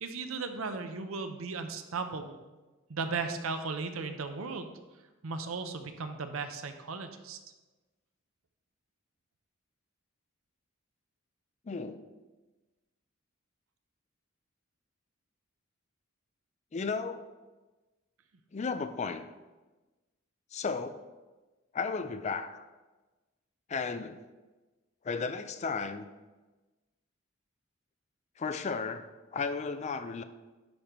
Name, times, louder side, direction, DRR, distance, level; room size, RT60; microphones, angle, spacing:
voice 1, 0.0-2.4 2.9-4.7 5.2-7.4, right 4 dB, 85° right, 8 dB, 0.7 m, -36 dB
voice 2, 11.7-12.1 16.7-17.2 18.5-19.3 20.5-21.0 21.7-22.6 23.7-24.2 25.0-26.1 28.4-30.2, left 5 dB, 35° left, 10 dB, 0.4 m, -34 dB
10.5 x 5.1 x 3.0 m, 1.2 s
head